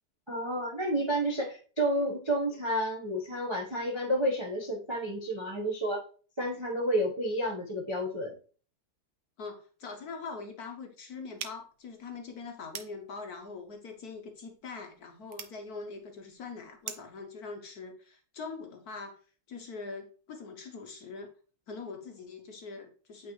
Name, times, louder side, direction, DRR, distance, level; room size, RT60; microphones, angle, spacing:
voice 1, 0.3-6.0 6.4-8.3, equal, 35° right, -2 dB, 0.4 m, -30 dB
voice 2, 9.4-19.2 19.5-21.3 21.7-23.3, left 4 dB, 60° left, 4 dB, 1.1 m, -43 dB
sound 1, 11.4-17.2, right 9 dB, 90° right, 1.6 m, -47 dB
8.6 x 3.9 x 3.1 m, 0.40 s
omnidirectional pair, 2.3 m